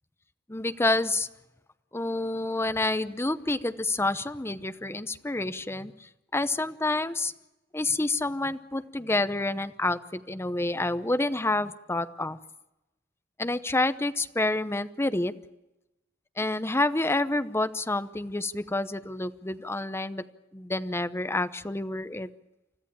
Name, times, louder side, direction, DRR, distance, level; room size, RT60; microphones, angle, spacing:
voice 1, 0.5-1.3 1.9-5.9 6.3-7.3 7.7-12.4 13.4-15.3 16.4-20.2 20.5-22.3, left 2 dB, 15° left, 12 dB, 0.8 m, -28 dB
29.5 x 14.0 x 8.6 m, 0.97 s
head